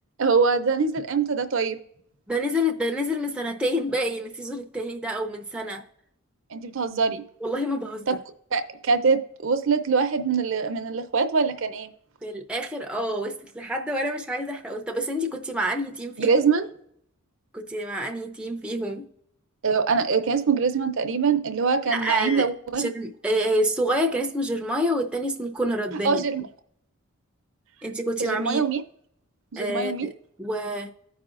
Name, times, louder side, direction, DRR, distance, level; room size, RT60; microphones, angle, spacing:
voice 1, 0.2-1.8 6.5-7.2 8.1-8.2 8.5-11.9 16.2-16.7 19.6-22.8 26.0-26.4 28.2-28.8 29.5-30.1, right 5 dB, 60° right, 0.6 m, -23 dB
voice 2, 2.3-5.8 7.4-8.2 12.2-16.3 17.5-19.1 21.9-22.5 22.8-26.2 27.8-28.6 29.6-30.1 30.4-30.9, equal, 5° right, 0.4 m, -28 dB
14.5 x 4.8 x 2.4 m
head